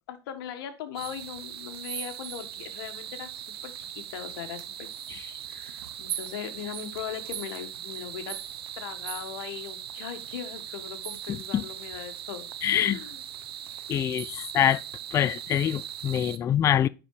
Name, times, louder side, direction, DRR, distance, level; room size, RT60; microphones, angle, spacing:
voice 1, 0.1-4.9 5.5-8.4 8.7-13.2, left 9 dB, 70° left, 1.6 m, -39 dB
sound 1, 0.9-16.4, right 10 dB, 85° right, 0.7 m, -39 dB
voice 2, 12.6-13.0 13.9-14.8 15.1-16.9, left 10 dB, 25° left, 0.3 m, -25 dB
9.9 x 4.5 x 4.9 m
hypercardioid pair, 115°, 12 cm